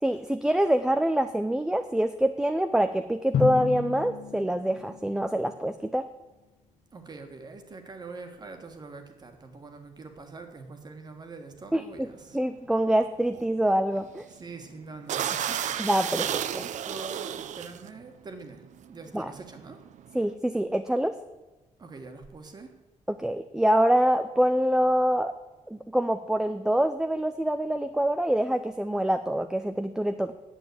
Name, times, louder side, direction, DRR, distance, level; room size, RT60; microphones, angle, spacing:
voice 1, 0.0-6.1 11.7-11.8 12.3-14.3 15.8-16.2 19.1-19.3 20.1-21.2 23.2-25.3 25.7-30.3, right 1 dB, 5° right, 8 dB, 0.4 m, -25 dB
Drum, 3.3-6.0, left 8 dB, 65° left, 1.0 m, -33 dB
voice 2, 6.9-12.4 14.3-19.8 21.8-22.8, right 3 dB, 30° right, 6 dB, 1.4 m, -44 dB
sound 1, 12.1-12.3 12.8-13.0 13.3-13.4 14.0-14.3 14.6-14.7 15.1-17.9 18.6-18.9 19.1-20.3, right 10 dB, 65° right, 0.5 m, -32 dB
9.4 x 7.7 x 8.1 m, 1.1 s
wide cardioid pair, 160°, 13 cm